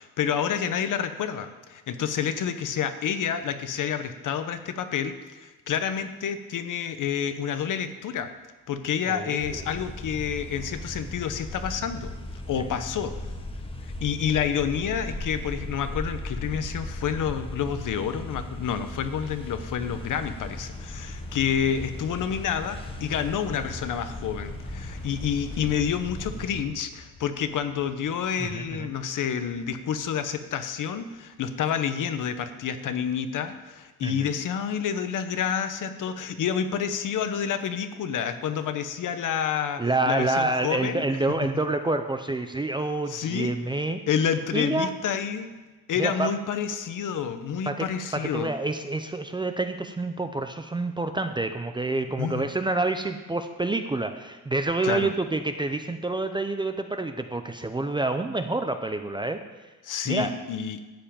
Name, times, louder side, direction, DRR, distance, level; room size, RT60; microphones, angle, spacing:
voice 1, 0.0-8.3 8.7-12.1 12.5-13.1 14.0-41.0 43.1-43.5 44.1-45.5 45.9-48.5 52.2-52.5 54.8-55.1 59.8-60.8, left 8 dB, 55° left, 9 dB, 1.0 m, -29 dB
voice 2, 9.1-9.6 28.4-28.9 34.0-34.3 39.8-44.0 44.5-44.9 46.0-46.3 47.7-47.9 48.1-59.4 60.1-60.3, right 2 dB, 15° right, 7 dB, 0.5 m, -28 dB
sound 1, 9.4-26.6, left 1 dB, 15° left, 1.1 m, -37 dB
sound 2, 18.2-31.0 31.3-31.4, left 3 dB, 85° left, 2.0 m, -48 dB
13.0 x 5.6 x 8.8 m, 1.2 s
cardioid pair, 150°, 36 cm